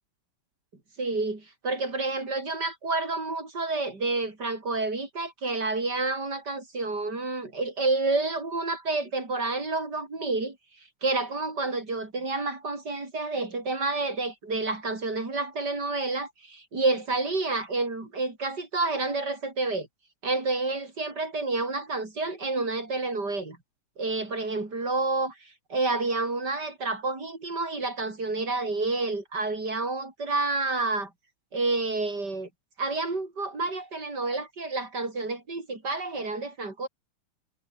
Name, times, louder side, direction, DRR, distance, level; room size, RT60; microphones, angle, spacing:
voice 1, 1.0-10.6 11.0-19.9 20.2-23.6 24.0-31.1 31.5-32.5 32.8-36.9, right 3 dB, 50° right, 5.5 m, -29 dB
omnidirectional pair, 2.4 m